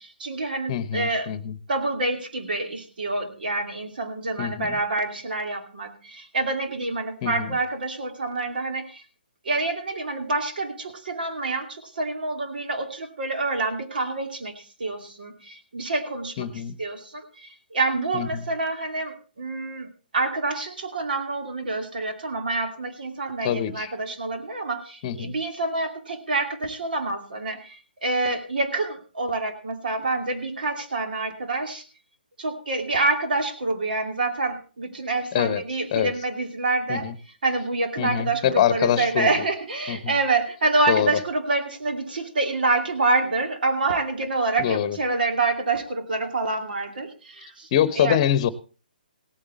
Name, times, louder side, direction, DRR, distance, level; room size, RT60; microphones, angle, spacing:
voice 1, 0.0-1.3 1.7-9.0 9.4-31.8 32.4-37.1 37.4-47.7 48.0-48.2, right 3 dB, 65° right, 5 dB, 2.6 m, -27 dB
voice 2, 0.7-1.6 4.4-4.8 7.2-7.5 16.4-16.7 18.1-18.5 23.4-23.9 25.0-25.3 35.3-35.6 35.9-36.1 36.9-37.1 38.0-39.3 39.9-40.1 40.9-41.1 44.6-45.0 47.7-48.5, left 10 dB, 35° left, 16 dB, 1.0 m, -24 dB
17.0 x 8.7 x 4.3 m, 0.35 s
figure-of-eight pair, 145°, 5 cm